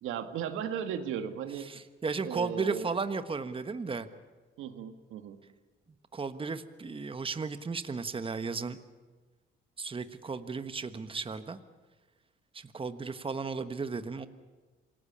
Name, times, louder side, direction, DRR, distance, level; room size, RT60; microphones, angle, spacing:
voice 1, 0.0-1.7 2.2-2.9 4.6-5.4, right 8 dB, 90° right, 8 dB, 1.8 m, -36 dB
voice 2, 1.7-4.1 6.1-8.8 9.8-11.6 12.5-14.3, right 4 dB, 25° right, 10 dB, 1.3 m, -35 dB
27.0 x 18.0 x 8.7 m, 1.3 s
cardioid pair, 90°, 20 cm